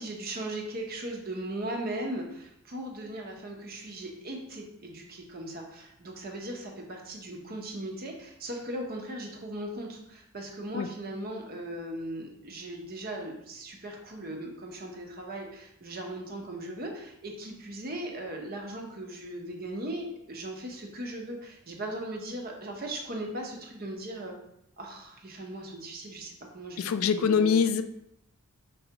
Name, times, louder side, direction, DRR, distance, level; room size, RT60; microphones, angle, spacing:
voice 1, 0.0-24.3 24.8-27.6, right 1 dB, 45° right, 1 dB, 0.8 m, -38 dB
voice 2, 26.8-27.8, left 6 dB, 80° left, 10 dB, 0.3 m, -24 dB
5.4 x 3.4 x 2.9 m, 0.78 s
head